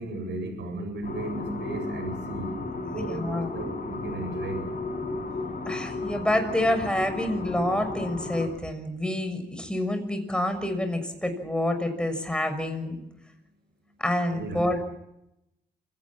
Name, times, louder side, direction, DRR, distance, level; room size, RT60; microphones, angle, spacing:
voice 1, 0.0-4.6 14.3-14.6, right 2 dB, 85° right, 6 dB, 7.9 m, -35 dB
sound 1, 1.0-8.5, left 2 dB, 50° left, 7.9 m, -34 dB
voice 2, 2.9-3.5 5.6-13.0 14.0-14.8, left 1 dB, 5° left, 7 dB, 6.5 m, -28 dB
26.5 x 17.5 x 7.5 m, 0.86 s
cardioid pair, 70°, 18 cm